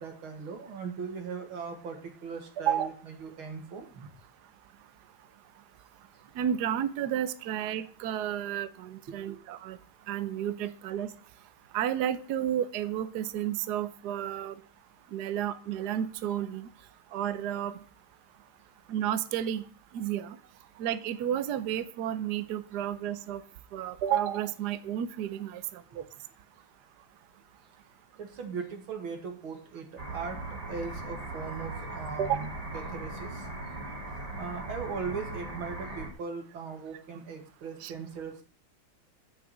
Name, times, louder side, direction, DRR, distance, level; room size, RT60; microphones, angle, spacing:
voice 1, 0.0-4.1 9.1-9.4 28.2-33.5 34.1-38.4, right 5 dB, 90° right, 4 dB, 2.8 m, -39 dB
voice 2, 6.4-9.8 10.1-11.1 11.7-14.5 15.1-16.7 17.1-17.7 18.9-19.6 19.9-20.4 20.8-23.4 23.7-26.0 32.2-32.4 37.8-37.9, right 10 dB, 65° right, 12 dB, 1.2 m, -31 dB
sound 1, 30.0-36.1, right 2 dB, 20° right, 2.4 m, -39 dB
9.2 x 6.2 x 8.0 m, 0.44 s
omnidirectional pair, 2.2 m